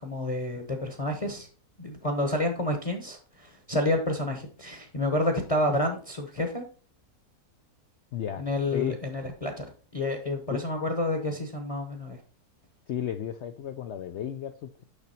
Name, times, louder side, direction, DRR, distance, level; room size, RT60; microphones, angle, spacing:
voice 1, 0.0-1.5 1.8-6.6 8.4-9.7 9.9-12.2, left 1 dB, 30° left, 4 dB, 0.9 m, -29 dB
voice 2, 8.1-8.4 8.7-9.0 10.5-10.6 12.9-14.8, left 10 dB, 70° left, 8 dB, 0.6 m, -33 dB
6.7 x 5.9 x 4.2 m, 0.39 s
omnidirectional pair, 1.6 m